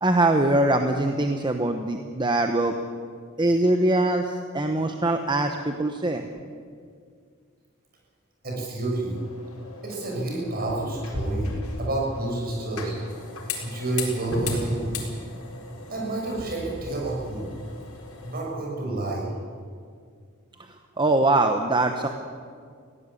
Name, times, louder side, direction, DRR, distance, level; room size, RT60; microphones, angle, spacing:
voice 1, 0.0-2.7 3.4-4.2 4.5-6.3 21.0-22.1, right 2 dB, 20° right, 5 dB, 1.0 m, -22 dB
voice 2, 8.4-9.3 9.8-12.9 13.6-14.9 15.9-17.5 18.2-19.3, right 2 dB, 45° right, -3 dB, 6.9 m, -29 dB
sound 1, 9.1-18.4, left 2 dB, 90° left, 4.4 m, -36 dB
21.0 x 16.5 x 8.5 m, 2.1 s
head